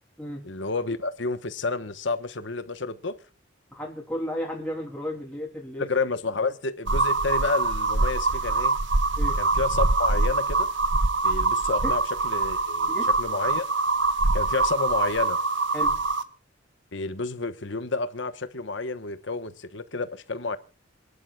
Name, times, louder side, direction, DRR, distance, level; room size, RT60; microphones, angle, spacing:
voice 1, 0.4-3.1 5.8-8.8 9.4-10.7 11.2-12.9 13.2-13.7 14.3-15.4 16.9-20.6, left 3 dB, 65° left, 1.2 m, -30 dB
voice 2, 3.7-5.9 9.2-9.4 12.9-13.1 15.7-15.9, equal, 5° left, 2.7 m, -33 dB
sound 1, 6.9-16.2, right 3 dB, 65° right, 1.1 m, -24 dB
27.5 x 11.0 x 2.4 m
head